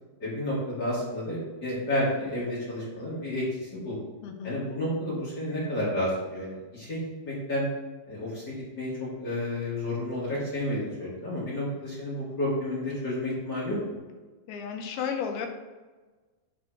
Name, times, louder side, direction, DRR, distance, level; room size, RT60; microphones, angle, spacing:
voice 1, 0.2-4.0 4.4-7.6 8.1-13.8, left 1 dB, 40° left, -8 dB, 1.9 m, -31 dB
voice 2, 4.2-4.6 14.5-15.5, left 7 dB, 90° left, 4 dB, 2.6 m, -33 dB
8.6 x 3.4 x 4.4 m, 1.3 s
omnidirectional pair, 4.5 m